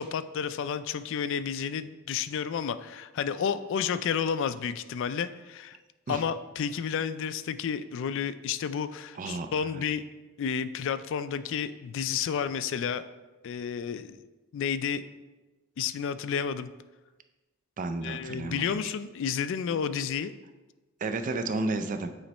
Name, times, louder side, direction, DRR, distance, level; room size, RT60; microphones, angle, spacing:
voice 1, 0.0-5.8 6.1-10.1 10.4-13.0 13.4-14.2 14.5-15.0 15.8-16.7 18.0-20.3, left 7 dB, 65° left, 13 dB, 0.3 m, -31 dB
voice 2, 9.2-9.8 17.8-18.8 21.0-22.1, right 3 dB, 40° right, 8 dB, 0.4 m, -32 dB
8.7 x 3.2 x 4.2 m, 1.2 s
head